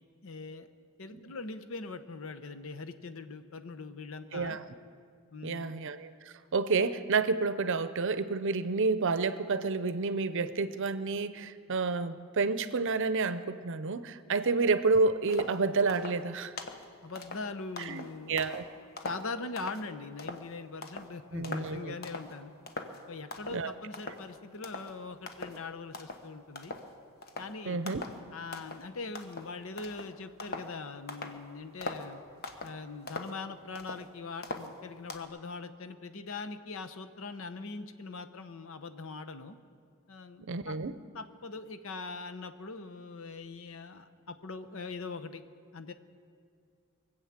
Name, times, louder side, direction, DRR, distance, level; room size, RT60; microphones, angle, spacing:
voice 1, 0.2-0.7 1.0-4.6 5.3-5.8 17.0-18.4 19.0-22.5 23.1-26.7 27.4-27.8 28.3-32.2 32.6-39.6 40.1-40.8 41.1-45.4 45.7-45.9, left 3 dB, 70° left, 9 dB, 0.8 m, -41 dB
voice 2, 4.3-4.6 5.4-6.1 6.5-16.5 17.8-18.6 21.3-21.9 23.5-23.7 27.6-28.1 40.4-41.0, right 4 dB, 65° right, 13 dB, 0.6 m, -29 dB
sound 1, 15.3-15.6 15.9-16.2 16.6-16.9 17.2-18.7 19.0-19.8 20.2-20.5 20.8-21.1 21.4-21.7 22.0-22.3 22.7-23.0 23.3-23.6 23.9-24.3 24.6-24.9 25.3-25.6 25.9-26.3 26.6-26.9 27.2-27.5 27.9-28.2 28.5-28.9 29.2-30.7 31.1-31.4 31.8-32.1 32.4-32.8 33.1-34.1 34.4-35.2, left 2 dB, 50° left, 1.1 m, -41 dB
22.5 x 8.1 x 7.3 m, 2.3 s
head